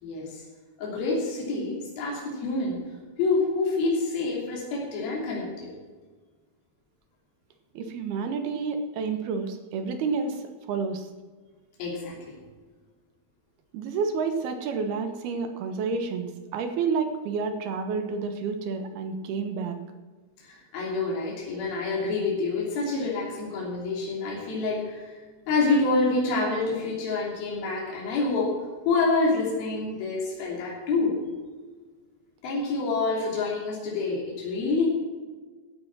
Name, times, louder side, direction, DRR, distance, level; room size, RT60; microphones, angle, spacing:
voice 1, 0.0-0.4 0.8-2.8 3.2-5.7 11.8-12.4 20.4-25.1 25.5-28.6 28.9-31.2 32.4-34.9, left 3 dB, 70° left, -4 dB, 4.9 m, -27 dB
voice 2, 7.7-11.1 13.7-19.8, right 5 dB, 80° right, 7 dB, 3.2 m, -30 dB
15.0 x 8.9 x 6.0 m, 1.4 s
omnidirectional pair, 4.5 m